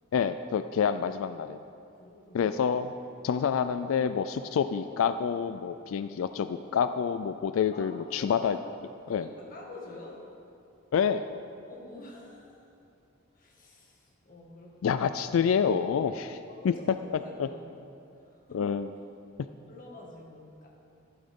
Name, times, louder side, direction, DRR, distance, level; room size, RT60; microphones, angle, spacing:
voice 1, 0.1-1.6 2.3-2.9 3.2-8.6 9.1-9.3 10.9-11.2 14.8-16.4 16.6-16.7 17.4-17.5 18.5-18.9, left 7 dB, 90° left, 11 dB, 0.3 m, -27 dB
voice 2, 1.8-2.5 7.7-8.5 9.1-10.3 11.6-12.6 13.3-15.0 16.5-18.7 19.7-20.7, left 2 dB, 45° left, -2 dB, 1.9 m, -48 dB
12.5 x 11.5 x 3.7 m, 2.6 s
head